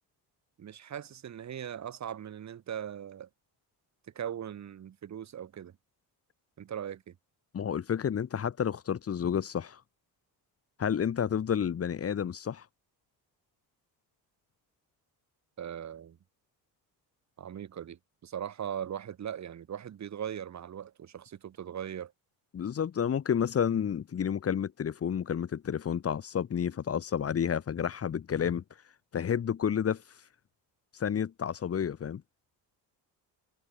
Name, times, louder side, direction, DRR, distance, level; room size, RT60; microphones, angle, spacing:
voice 1, 0.6-3.3 4.1-5.8 6.6-7.2 15.6-16.2 17.4-22.1, right 9 dB, 45° right, 7.6 m, -39 dB
voice 2, 7.5-9.8 10.8-12.7 22.5-28.6 29.1-30.0 30.9-32.2, left 8 dB, 35° left, 3.5 m, -30 dB
cardioid pair, 155°, 40 cm